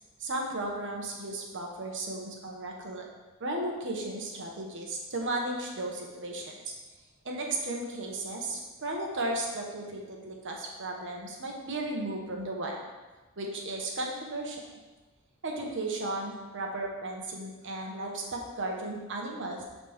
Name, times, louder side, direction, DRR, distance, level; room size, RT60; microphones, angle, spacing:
voice 1, 0.2-3.0 3.4-6.7 7.2-12.9 13.4-14.6 15.4-19.6, right 2 dB, 60° right, 0 dB, 1.3 m, -35 dB
12.0 x 4.3 x 3.6 m, 1.2 s
head